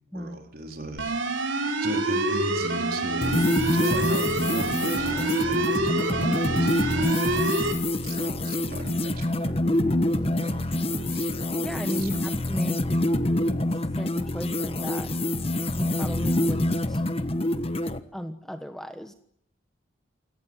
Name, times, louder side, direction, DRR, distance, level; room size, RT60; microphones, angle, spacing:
voice 1, 0.1-1.1 1.8-7.3 8.0-11.3 11.9-12.2, right 1 dB, 45° right, 3 dB, 4.5 m, -38 dB
sound 1, 1.0-7.7, right 2 dB, 70° right, 4.2 m, -26 dB
sound 2, 3.2-18.0, left 1 dB, 30° left, 1.3 m, -26 dB
voice 2, 11.6-13.1 13.7-15.1 15.8-17.0 18.1-19.1, equal, ahead, 7 dB, 1.2 m, -35 dB
28.0 x 17.5 x 9.2 m, 0.68 s
head